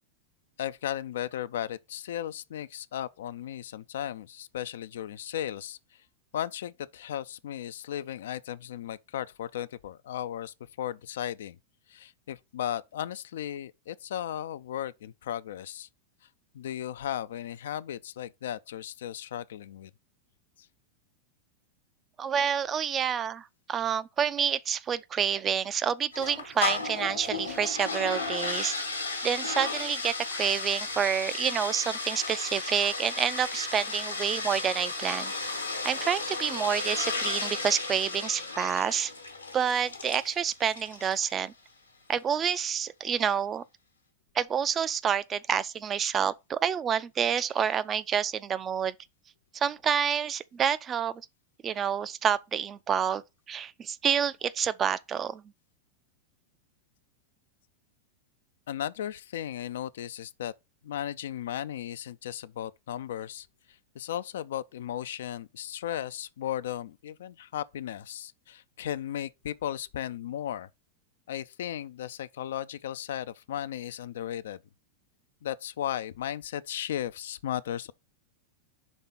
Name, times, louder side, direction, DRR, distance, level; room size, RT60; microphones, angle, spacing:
voice 1, 0.6-5.8 6.3-11.6 11.9-15.9 16.5-19.9 58.7-60.5 60.8-63.5 64.0-70.7 71.3-74.6 75.4-77.9, left 11 dB, 60° left, 0.3 m, -35 dB
voice 2, 22.2-28.8 29.2-35.3 35.8-39.1 39.5-41.5 42.1-43.6 44.3-48.9 49.5-51.2 51.6-53.2 53.5-55.4, right 8 dB, 25° right, 0.4 m, -28 dB
sound 1, 26.1-41.4, left 3 dB, 85° left, 1.1 m, -34 dB
5.3 x 3.6 x 5.6 m
figure-of-eight pair, 90°, 0 cm